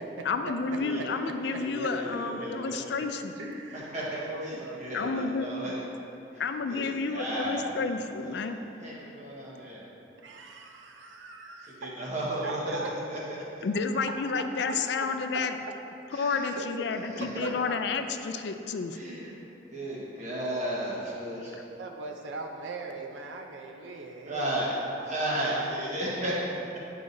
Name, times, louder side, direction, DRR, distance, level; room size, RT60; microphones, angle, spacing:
voice 1, 0.3-3.3 4.9-5.5 6.4-8.6 13.6-15.5 16.1-19.0, left 4 dB, 65° left, 7 dB, 0.3 m, -30 dB
voice 2, 1.6-2.7 3.7-5.8 6.7-7.9 8.3-8.5 8.8-9.8 11.8-12.8 13.1-13.2 16.1-16.6 17.1-17.2 18.9-19.3 19.7-21.5 24.2-24.7 25.1-26.8, right 1 dB, 40° right, -6 dB, 1.3 m, -34 dB
voice 3, 3.4-5.5 7.5-7.7 8.2-8.3 10.2-12.1 12.4-12.9 14.4-14.5 15.0-15.1 16.6-16.8 17.4-17.7 21.3-25.8, right 3 dB, 85° right, 3 dB, 0.5 m, -40 dB
9.2 x 4.8 x 2.7 m, 2.9 s
head